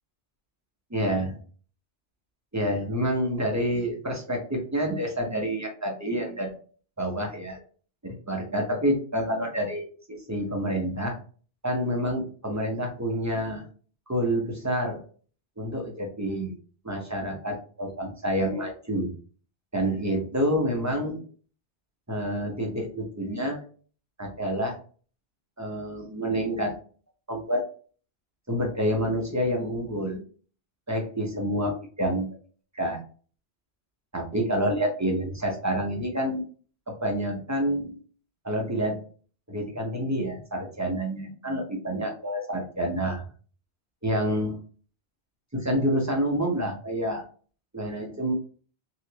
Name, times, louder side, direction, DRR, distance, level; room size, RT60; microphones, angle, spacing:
voice 1, 0.9-1.4 2.5-6.5 7.0-7.6 8.0-9.8 10.3-11.2 11.6-13.7 14.1-15.0 15.6-16.6 16.8-19.1 19.7-21.2 22.1-23.6 24.2-24.8 25.6-26.7 27.3-27.6 28.5-30.2 30.9-32.3 32.7-33.0 34.1-36.4 36.9-38.0 38.4-39.0 39.5-43.2 44.0-44.6 45.5-47.2 47.7-48.3, equal, 20° right, 0 dB, 0.6 m, -28 dB
3.0 x 2.8 x 2.8 m, 0.41 s
omnidirectional pair, 1.1 m